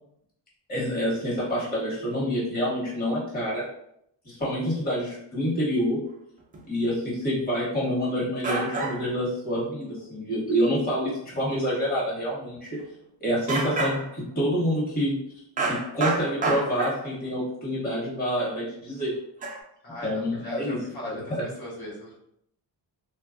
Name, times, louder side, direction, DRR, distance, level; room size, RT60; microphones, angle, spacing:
voice 1, 0.7-3.6 4.2-6.0 6.7-12.7 13.2-19.1 20.0-20.8 21.0-21.4, equal, 20° left, -7 dB, 1.0 m, -27 dB
sound 1, 6.5-6.6 7.9-8.0 8.4-9.2 9.6-9.7 10.0-10.1 10.4-10.7 11.3-11.6 11.9-12.0 12.5-12.6 12.8-12.9 13.5-14.3 15.6-17.2 18.1-18.2 19.4-19.6, right 3 dB, 20° right, 0.3 m, -29 dB
voice 2, 19.8-22.2, left 1 dB, 60° left, -6 dB, 1.0 m, -39 dB
3.1 x 2.2 x 2.5 m, 0.74 s
cardioid pair, 145°, 43 cm